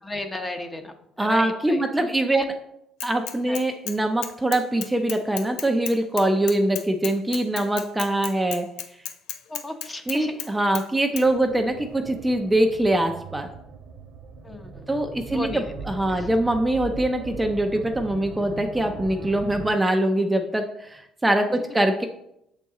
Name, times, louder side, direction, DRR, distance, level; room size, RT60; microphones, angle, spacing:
voice 1, 0.0-1.8 2.3-2.4 3.5-3.6 9.5-10.4 14.4-15.0 15.3-15.7 16.1-16.3, left 1 dB, 20° left, 6 dB, 0.9 m, -34 dB
voice 2, 1.2-2.5 3.0-8.7 10.1-13.5 14.9-22.1, right 1 dB, 10° right, 4 dB, 0.6 m, -23 dB
Bicycle / Mechanisms, 3.0-4.0 4.2-10.5 10.7-10.8 11.2-11.3, left 10 dB, 85° left, 0.5 m, -33 dB
sound 1, 11.2-19.7, right 4 dB, 60° right, 1.1 m, -39 dB
6.7 x 4.1 x 3.7 m, 0.79 s
supercardioid pair, 80°, 0 cm